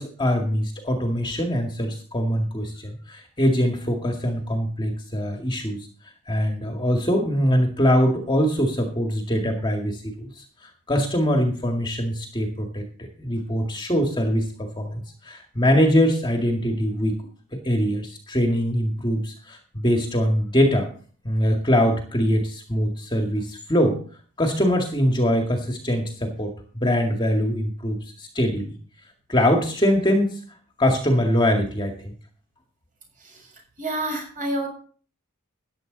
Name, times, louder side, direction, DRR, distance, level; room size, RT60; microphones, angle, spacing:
voice 1, 0.0-5.9 6.3-12.8 13.2-17.2 17.5-20.9 21.2-24.0 24.4-28.8 29.3-30.4 30.8-32.1, equal, 20° left, 2 dB, 2.0 m, -23 dB
voice 2, 33.2-33.5 33.8-34.7, right 1 dB, 40° right, 1 dB, 7.0 m, -29 dB
14.5 x 10.5 x 4.0 m, 0.43 s
head